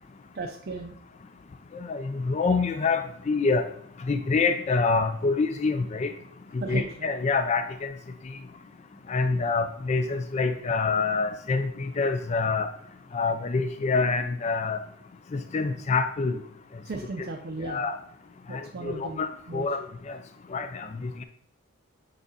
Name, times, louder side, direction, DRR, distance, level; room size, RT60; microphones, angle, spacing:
voice 1, 0.3-1.0 6.6-7.1 16.8-17.9 18.5-19.2 19.5-19.7, right 2 dB, 45° right, 3 dB, 0.5 m, -35 dB
voice 2, 1.7-3.6 4.1-6.1 6.7-7.9 9.1-12.7 13.1-14.8 15.3-16.4 17.6-18.0 18.5-20.2 20.5-21.2, left 4 dB, 30° left, 7 dB, 0.3 m, -26 dB
6.9 x 3.8 x 4.0 m, 0.67 s
head